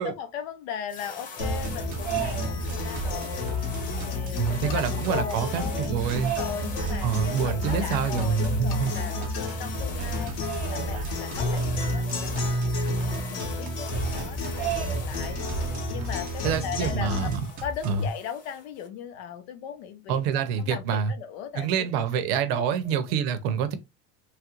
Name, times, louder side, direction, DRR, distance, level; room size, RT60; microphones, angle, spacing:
voice 1, 0.0-3.5 4.0-17.3 17.6-20.2 20.6-22.3 22.5-23.2, left 8 dB, 80° left, 0.8 m, -38 dB
sound 1, 0.9-18.9, left 5 dB, 25° left, 0.5 m, -42 dB
sound 2, 1.4-17.4, left 1 dB, 50° left, 0.9 m, -32 dB
sound 3, 1.4-18.1, right 2 dB, 25° right, 0.4 m, -34 dB
voice 2, 4.4-6.4 7.0-8.9 16.4-17.4 17.8-18.0 20.1-21.1 21.5-23.7, right 7 dB, 65° right, 0.6 m, -26 dB
3.1 x 2.4 x 2.9 m
cardioid pair, 165°, 32 cm